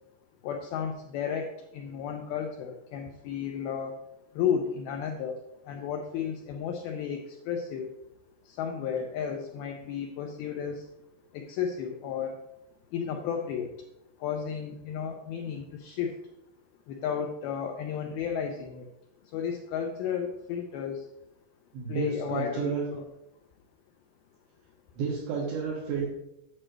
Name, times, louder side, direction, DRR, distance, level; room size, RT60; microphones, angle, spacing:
voice 1, 0.4-4.0 4.4-5.4 5.7-7.9 8.5-10.8 11.3-12.4 12.9-13.7 14.2-16.1 16.9-18.9 19.3-21.0 21.9-23.0, left 7 dB, 90° left, 3 dB, 2.1 m, -33 dB
voice 2, 21.7-22.9 25.0-26.1, right 5 dB, 90° right, -5 dB, 3.6 m, -31 dB
8.8 x 7.6 x 3.2 m, 0.85 s
omnidirectional pair, 5.0 m